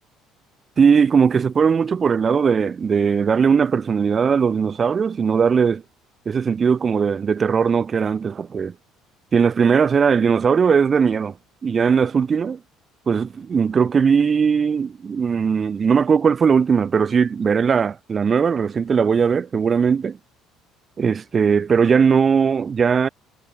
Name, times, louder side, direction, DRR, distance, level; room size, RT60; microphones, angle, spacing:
voice 1, 0.8-5.8 6.3-8.7 9.3-11.3 11.6-12.6 13.1-20.2 21.0-23.1, right 6 dB, 35° right, 0.3 m, -19 dB
cardioid pair, 100°, 0 cm